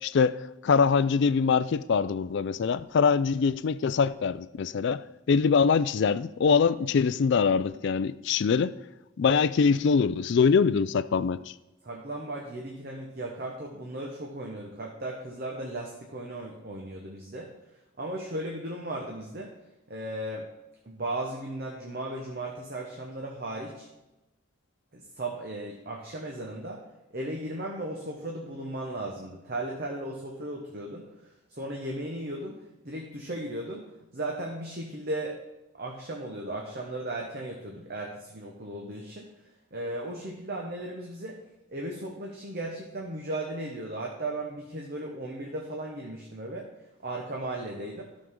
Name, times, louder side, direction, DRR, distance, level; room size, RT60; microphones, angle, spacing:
voice 1, 0.0-5.0 5.3-8.7 9.2-11.4, left 5 dB, 55° left, 0.3 m, -23 dB
voice 2, 11.8-17.5 18.0-19.5 19.9-20.5 20.8-23.9 24.9-26.8 27.1-31.0 31.5-33.9 34.1-35.4 35.7-39.3 39.7-41.4 41.7-46.7 47.0-48.1, right 1 dB, 45° right, 1.1 m, -36 dB
12.5 x 6.4 x 3.7 m
head